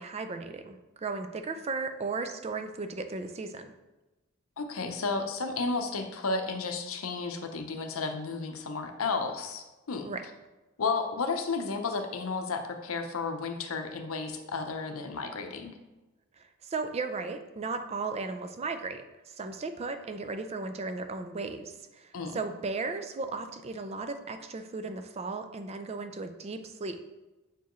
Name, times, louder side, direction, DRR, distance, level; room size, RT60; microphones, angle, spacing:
voice 1, 0.0-3.7 10.0-10.2 16.4-27.0, right 3 dB, 30° right, 8 dB, 0.4 m, -36 dB
voice 2, 4.6-10.1 10.8-15.7 22.1-22.4, left 4 dB, 75° left, 6 dB, 0.7 m, -32 dB
6.9 x 4.6 x 3.1 m, 1.1 s
head